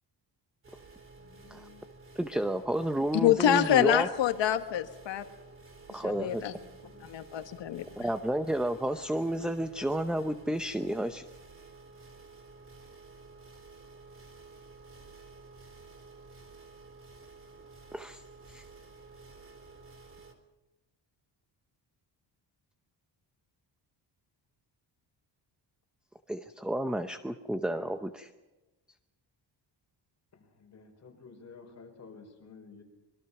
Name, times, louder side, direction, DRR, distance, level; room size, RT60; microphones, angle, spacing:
sound 1, 0.6-20.3, right 3 dB, 30° right, 3.5 m, -52 dB
voice 1, 1.2-1.9 5.9-7.1 30.3-32.8, left 4 dB, 40° left, 3 dB, 5.3 m, -51 dB
voice 2, 2.2-4.1 5.9-6.4 8.0-11.2 17.9-18.2 18.5-18.6 26.3-28.3, right 1 dB, ahead, 9 dB, 0.7 m, -31 dB
voice 3, 3.1-5.2 6.0-6.5 7.0-7.8, left 11 dB, 80° left, 8 dB, 1.6 m, -26 dB
26.0 x 23.0 x 5.9 m, 1.1 s
wide cardioid pair, 165°, 43 cm